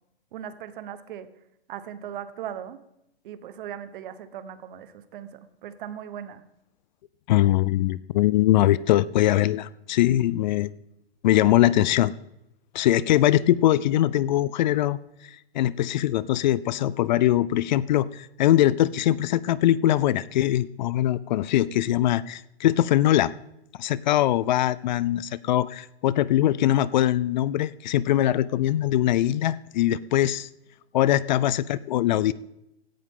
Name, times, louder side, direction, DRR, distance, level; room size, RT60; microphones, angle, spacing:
voice 1, 0.3-1.3 1.7-2.8 3.2-6.4, right 9 dB, 55° right, 13 dB, 1.2 m, -38 dB
voice 2, 7.3-10.7 11.2-12.1 12.7-15.0 15.2-23.3 23.8-30.5 30.9-32.3, left 13 dB, 50° left, 20 dB, 0.5 m, -22 dB
16.5 x 11.5 x 3.8 m, 0.85 s
hypercardioid pair, 140°, 31 cm